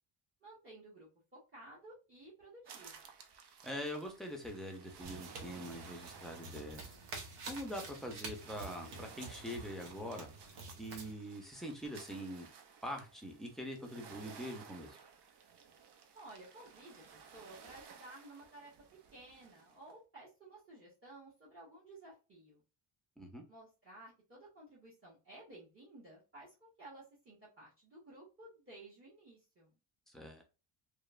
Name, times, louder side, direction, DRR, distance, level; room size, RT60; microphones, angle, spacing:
voice 1, 0.4-3.1 16.1-18.7 19.1-22.6 23.5-29.7, right 2 dB, 30° right, -5 dB, 0.9 m, -55 dB
sound 1, 2.6-19.9, right 6 dB, 55° right, 0.6 m, -56 dB
voice 2, 3.6-6.9 7.4-12.5 12.8-15.0 23.2-23.4 30.1-30.5, equal, ahead, 2 dB, 0.4 m, -44 dB
sound 2, 5.0-11.1, right 3 dB, 85° right, 0.8 m, -49 dB
2.9 x 2.0 x 2.3 m, 0.30 s
cardioid pair, 130°, 48 cm